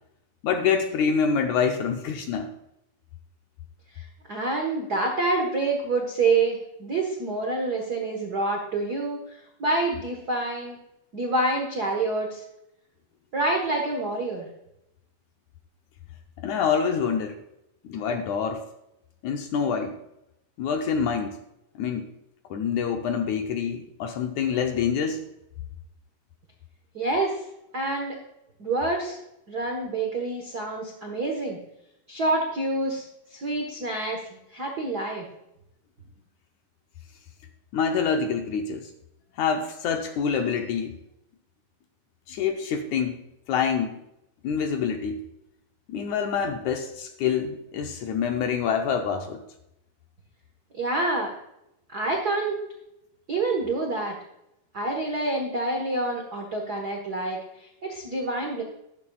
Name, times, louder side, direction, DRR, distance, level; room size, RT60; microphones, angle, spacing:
voice 1, 0.4-2.5 16.4-17.4 17.8-18.7 19.2-20.0 20.6-21.4 21.8-22.1 22.5-25.2 37.7-38.9 39.4-41.0 42.3-44.0 44.4-45.2 45.9-49.4, left 6 dB, 75° left, 5 dB, 1.8 m, -26 dB
voice 2, 3.9-10.8 11.1-12.4 13.3-14.5 26.9-27.4 27.7-28.2 28.6-29.2 29.5-31.6 32.1-33.0 33.3-35.2 50.7-51.3 51.9-52.6 53.3-54.1 54.7-58.6, right 2 dB, 85° right, 1 dB, 0.8 m, -27 dB
13.0 x 11.5 x 2.3 m, 0.85 s
omnidirectional pair, 4.0 m